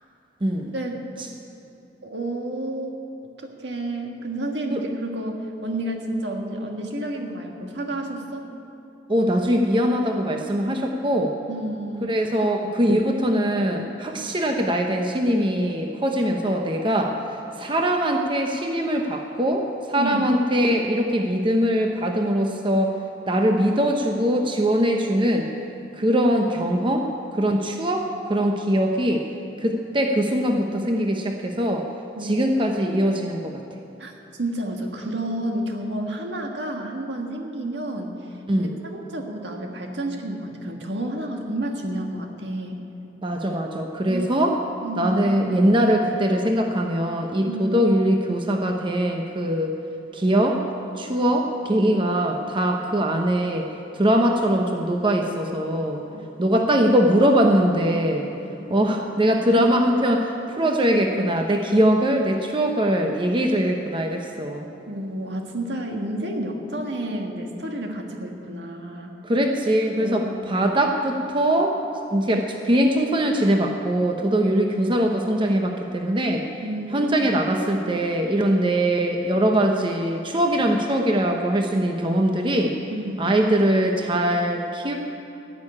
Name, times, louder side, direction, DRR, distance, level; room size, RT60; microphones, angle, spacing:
voice 1, 0.4-0.7 4.7-4.8 9.1-11.3 12.0-17.2 17.6-23.0 23.3-25.5 26.0-27.1 27.4-29.2 29.6-31.9 32.2-33.5 38.5-38.7 43.2-44.6 45.0-49.7 50.1-50.6 51.0-53.6 53.9-56.0 56.4-58.3 58.7-64.7 69.2-71.8 72.1-76.4 76.9-82.7 83.2-84.9, equal, 30° right, 2 dB, 0.8 m, -22 dB
voice 2, 2.0-2.9 3.4-8.5 11.5-12.2 19.9-20.3 32.1-32.8 34.0-42.8 44.1-44.2 44.8-45.2 47.5-47.8 58.4-58.5 64.9-69.1 70.0-70.3 76.6-77.2 82.9-83.3, right 1 dB, 75° right, 2 dB, 1.6 m, -30 dB
14.5 x 6.6 x 9.7 m, 2.8 s
head